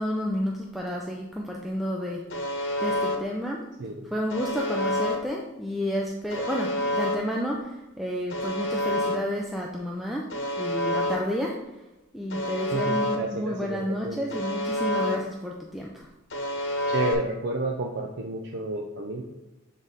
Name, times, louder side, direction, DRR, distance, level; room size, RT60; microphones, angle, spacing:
voice 1, 0.0-2.2 2.8-3.6 4.1-11.6 12.1-16.1, equal, ahead, -2 dB, 0.4 m, -31 dB
Alarm, 2.3-3.2 4.3-5.2 6.3-7.2 8.3-9.2 10.3-11.2 12.3-13.2 14.3-15.2 16.3-17.1, left 1 dB, 60° left, 1.0 m, -28 dB
voice 2, 12.7-14.2 16.9-19.2, right 2 dB, 55° right, 2 dB, 0.5 m, -30 dB
7.3 x 3.9 x 3.6 m, 1.0 s
head